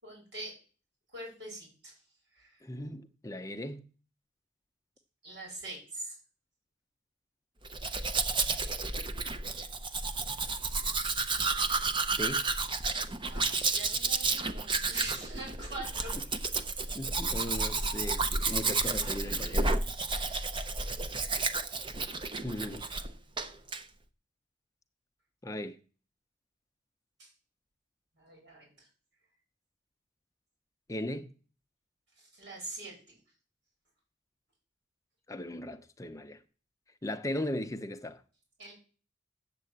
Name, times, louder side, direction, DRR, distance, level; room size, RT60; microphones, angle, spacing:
voice 1, 0.0-0.5 1.1-2.0 2.3-2.6 5.2-6.2 13.3-16.2 23.4-23.5 27.2-27.3 28.1-28.9 32.2-33.2 38.6-38.7, right 2 dB, 65° right, 7.1 m, -43 dB
voice 2, 2.6-3.8 12.2-12.5 16.9-19.9 20.2-20.3 22.4-22.9 25.4-25.8 30.9-31.3 35.3-36.4 37.0-38.2, left 1 dB, 15° left, 0.7 m, -37 dB
Domestic sounds home sounds, 7.7-23.1 23.4-23.8, right 3 dB, 25° right, 0.7 m, -31 dB
8.4 x 7.6 x 7.8 m
head